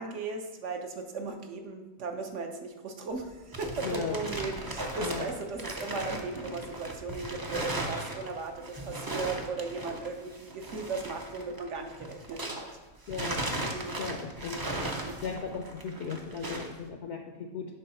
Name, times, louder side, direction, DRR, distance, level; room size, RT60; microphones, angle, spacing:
voice 1, 0.0-12.7 13.6-14.3 14.9-15.2, right 3 dB, 60° right, 4 dB, 1.1 m, -37 dB
sound 1, 3.1-12.8 13.1-16.8, right 1 dB, 25° right, 0.4 m, -37 dB
voice 2, 3.8-4.2 5.0-5.3 13.1-13.4 14.0-14.6 15.2-17.7, left 5 dB, 60° left, 3 dB, 0.8 m, -36 dB
7.7 x 3.9 x 5.5 m, 1.1 s
omnidirectional pair, 1.5 m